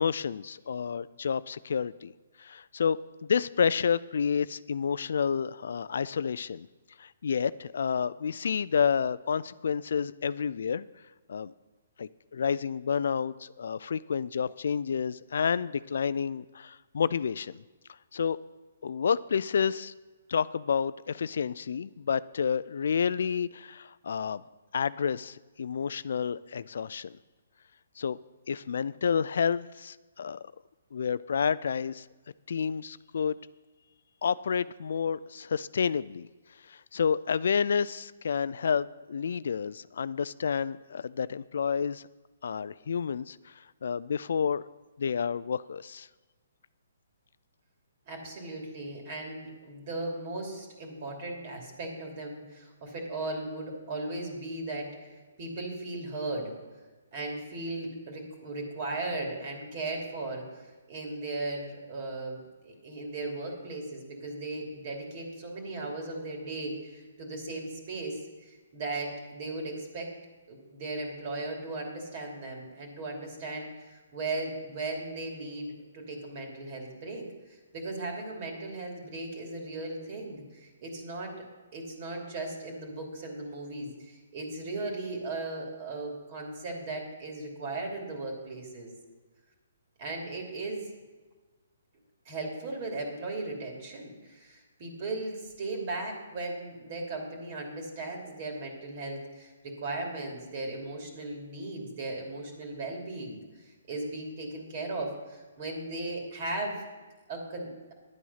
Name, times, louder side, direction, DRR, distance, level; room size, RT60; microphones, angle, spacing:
voice 1, 0.0-2.1 2.4-6.7 7.0-10.9 11.3-11.5 12.0-17.6 18.1-18.4 18.8-19.9 20.3-24.4 24.7-27.1 28.0-28.2 28.5-30.4 30.9-32.1 32.5-33.4 34.2-36.3 36.7-42.0 42.4-43.4 43.8-44.7 45.0-46.1, left 6 dB, 65° left, 18 dB, 0.3 m, -29 dB
voice 2, 48.1-55.1 55.4-56.5 57.1-70.1 70.5-77.2 77.7-81.3 81.7-88.9 90.0-90.9 92.2-103.4 103.9-106.8 107.3-107.9, right 2 dB, 45° right, 1 dB, 2.9 m, -37 dB
10.5 x 8.3 x 5.7 m, 1.3 s
hypercardioid pair, 140°, 0 cm